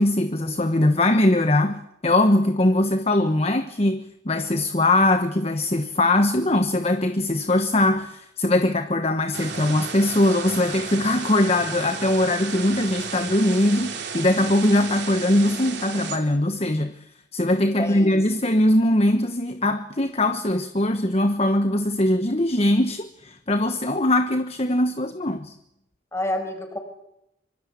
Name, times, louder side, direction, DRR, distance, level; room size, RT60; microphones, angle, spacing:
voice 1, 0.0-17.0 17.3-25.5, left 1 dB, 30° left, 1.2 m, -21 dB
sound 1, 9.3-16.2, right 6 dB, 60° right, 4.1 m, -34 dB
voice 2, 17.8-18.2 26.1-26.8, left 1 dB, 15° left, 5.8 m, -28 dB
26.0 x 24.0 x 8.4 m
head